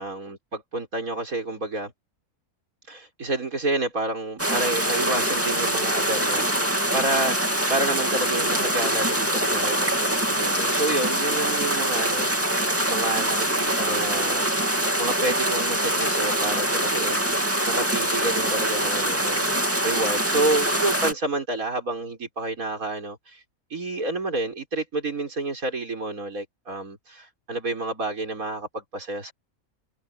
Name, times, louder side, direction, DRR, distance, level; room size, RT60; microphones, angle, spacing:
voice 1, 0.0-1.9 2.9-7.4 7.7-12.5 12.9-14.5 15.0-17.2 17.7-19.5 19.8-23.4 23.7-29.3, right 2 dB, 70° right, 5.8 m, -29 dB
sound 1, 4.4-21.1, right 1 dB, 10° right, 2.5 m, -24 dB
omnidirectional pair, 1.5 m